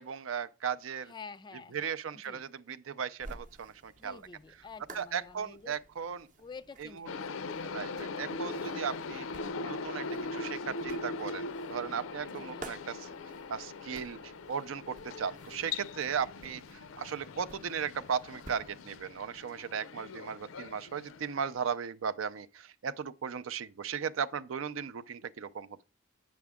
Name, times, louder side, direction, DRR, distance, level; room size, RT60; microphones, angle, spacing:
voice 1, 0.0-1.1 1.7-4.2 4.9-6.3 6.8-7.1 7.7-9.3 9.6-11.4 11.7-13.1 13.5-25.8, right 7 dB, 80° right, 0.4 m, -37 dB
voice 2, 1.1-2.4 4.0-5.8 6.4-7.5 12.3-12.6, left 5 dB, 20° left, 0.3 m, -49 dB
sound 1, 3.2-18.8, right 2 dB, 40° right, 0.7 m, -54 dB
sound 2, 7.1-21.6, left 3 dB, 85° left, 0.5 m, -41 dB
8.3 x 6.0 x 3.5 m
head